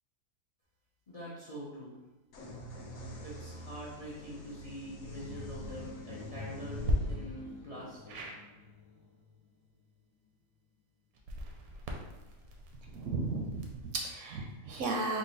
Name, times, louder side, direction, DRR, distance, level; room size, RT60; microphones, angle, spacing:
voice 1, 1.1-2.0 3.2-8.3, equal, 40° left, -6 dB, 0.5 m, -44 dB
sound 1, 2.3-9.9, left 2 dB, 75° left, 1.1 m, -46 dB
sound 2, 5.4-5.7 6.7-7.0 8.1-8.4 11.1-14.0, equal, 85° right, 1.1 m, -37 dB
voice 2, 12.8-15.2, right 3 dB, 70° right, 0 dB, 0.8 m, -35 dB
3.8 x 2.2 x 3.9 m, 1.1 s
omnidirectional pair, 1.5 m